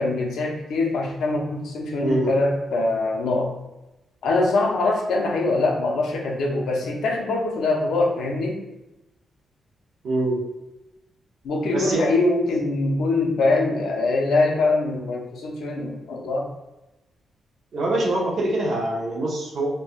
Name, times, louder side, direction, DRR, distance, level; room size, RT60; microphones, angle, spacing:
voice 1, 0.0-3.5 4.2-8.6 11.4-16.5, left 2 dB, 80° left, 0 dB, 0.5 m, -23 dB
voice 2, 10.0-10.4 11.7-12.0 17.7-19.7, right 1 dB, 50° right, -2 dB, 0.7 m, -24 dB
3.2 x 2.2 x 2.4 m, 0.99 s
wide cardioid pair, 165°, 0 cm